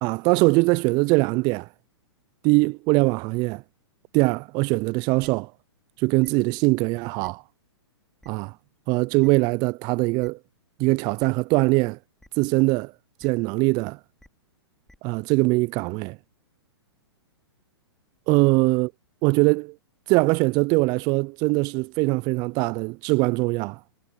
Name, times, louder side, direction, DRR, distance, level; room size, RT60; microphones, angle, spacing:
voice 1, 0.0-1.7 2.4-3.6 4.1-5.5 6.0-7.4 8.3-8.5 8.9-10.4 10.8-12.0 12.4-12.9 13.2-14.0 15.0-16.2 18.3-18.9 19.2-19.7 20.1-23.8, right 26 dB, 30° right, 0.4 m, -22 dB
sound 1, 5.2-5.3 6.2-6.3 7.2-7.3 8.2-8.3 9.2-9.3 10.2-10.3 11.2-11.3 12.2-12.3 13.2-13.3 14.2-14.3 14.9-15.0, left 1 dB, 5° left, 2.7 m, -52 dB
hypercardioid pair, 120°, 14 cm